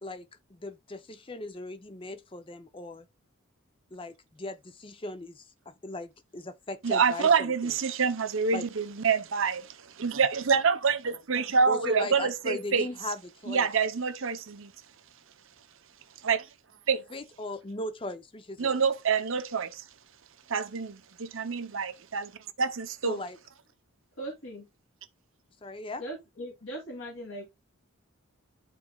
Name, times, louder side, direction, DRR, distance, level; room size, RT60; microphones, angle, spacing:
voice 1, 0.0-3.1 3.9-7.7 8.5-8.7 11.7-13.7 17.1-18.7 23.0-23.4 25.6-26.0, left 1 dB, 25° left, 0.6 m, -38 dB
voice 2, 6.8-12.9 13.5-14.7 16.2-16.5 16.9-17.0 18.6-19.8 20.5-22.3 22.6-23.2, right 5 dB, 65° right, 0.7 m, -27 dB
voice 3, 24.2-24.7 26.0-27.5, right 1 dB, 60° left, 2.7 m, -39 dB
11.5 x 4.2 x 2.3 m
head